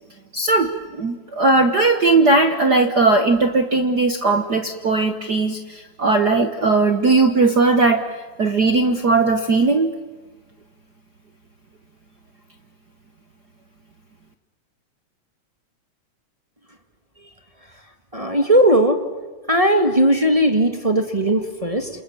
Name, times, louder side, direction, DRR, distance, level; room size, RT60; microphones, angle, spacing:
voice 1, 0.3-8.0 8.4-9.9, right 3 dB, 60° right, 7 dB, 1.1 m, -18 dB
voice 2, 18.1-19.0 19.5-21.9, right 1 dB, 20° right, 5 dB, 1.0 m, -17 dB
28.5 x 28.0 x 7.1 m, 1.3 s
omnidirectional pair, 3.7 m